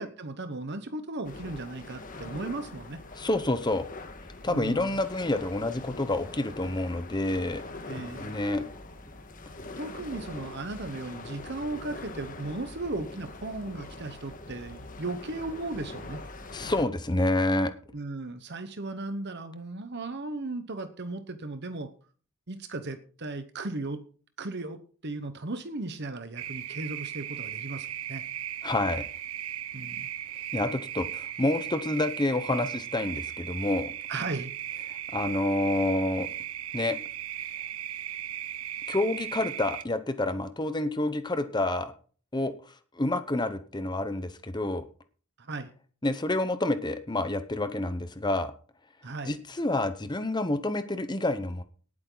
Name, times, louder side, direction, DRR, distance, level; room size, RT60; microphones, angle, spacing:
voice 1, 0.0-3.0 4.5-5.0 7.9-8.4 9.8-16.2 17.9-21.9 22.5-24.0 24.4-28.2 29.7-30.1 34.1-34.5 45.4-45.7 49.0-49.4, right 2 dB, 50° right, 9 dB, 1.1 m, -36 dB
sound 1, 1.2-16.8, left 2 dB, 40° left, 1.7 m, -43 dB
voice 2, 3.2-3.9 4.4-7.6 8.2-8.6 16.5-17.7 28.6-29.0 30.5-33.9 34.9-36.3 36.7-37.0 38.9-41.9 42.3-44.8 46.0-48.5 49.3-51.6, left 2 dB, 20° left, 10 dB, 0.9 m, -28 dB
sound 2, 26.4-39.8, right 11 dB, 85° right, 0.7 m, -37 dB
18.5 x 8.7 x 4.0 m, 0.41 s
head